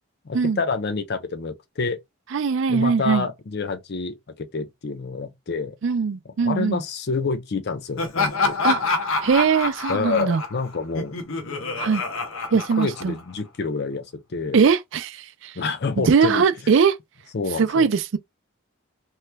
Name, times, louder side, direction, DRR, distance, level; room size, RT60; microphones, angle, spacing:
voice 1, 0.3-2.0 2.7-5.8 6.3-8.6 9.9-11.3 12.8-14.6 15.6-16.4 17.3-17.9, left 4 dB, 50° left, 0.5 m, -28 dB
voice 2, 2.3-3.3 5.8-6.8 8.6-8.8 9.2-10.4 11.8-12.0 12.5-13.1 14.5-15.6 16.0-17.0 17.6-18.2, right 5 dB, 65° right, 0.4 m, -20 dB
Laughter, 8.0-13.4, left 4 dB, 80° left, 0.8 m, -27 dB
2.9 x 2.2 x 3.3 m
head